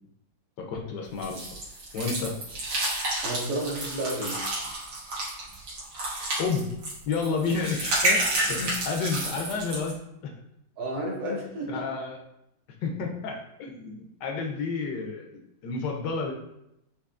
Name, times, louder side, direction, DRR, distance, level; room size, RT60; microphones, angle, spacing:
voice 1, 0.6-1.4 1.9-2.4 6.2-6.7 7.1-10.0 10.2-10.3 11.7-12.2 12.8-16.3, left 4 dB, 75° left, 1 dB, 1.2 m, -31 dB
sound 1, 1.2-9.9, right 1 dB, 85° right, 1.8 m, -30 dB
voice 2, 3.2-4.4 10.8-11.8, right 1 dB, 65° right, -1 dB, 1.2 m, -31 dB
4.6 x 2.6 x 2.4 m, 0.82 s
omnidirectional pair, 2.0 m